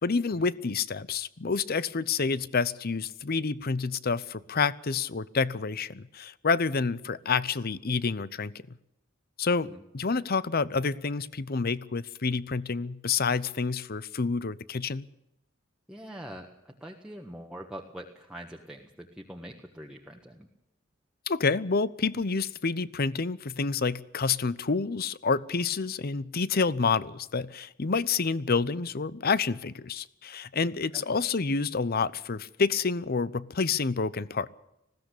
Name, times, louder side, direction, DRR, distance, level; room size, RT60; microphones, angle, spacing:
voice 1, 0.0-8.8 9.4-15.1 21.3-34.5, left 4 dB, 50° left, 19 dB, 0.8 m, -28 dB
voice 2, 15.9-20.5 30.9-31.0, right 1 dB, 5° right, 1 dB, 1.5 m, -44 dB
20.0 x 16.0 x 8.4 m, 0.86 s
head